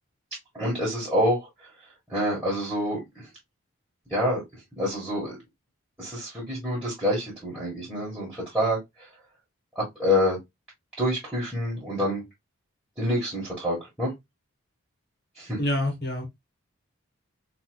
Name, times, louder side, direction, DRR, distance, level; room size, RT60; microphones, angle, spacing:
voice 1, 0.5-1.5 2.1-3.0 4.1-4.4 4.8-5.3 6.0-8.8 9.7-10.4 11.0-12.2 13.0-14.1 15.4-15.6, left 1 dB, 5° right, 1.7 m, -27 dB
voice 2, 15.6-16.3, left 1 dB, 45° left, 1.4 m, -26 dB
4.1 x 2.8 x 2.3 m
head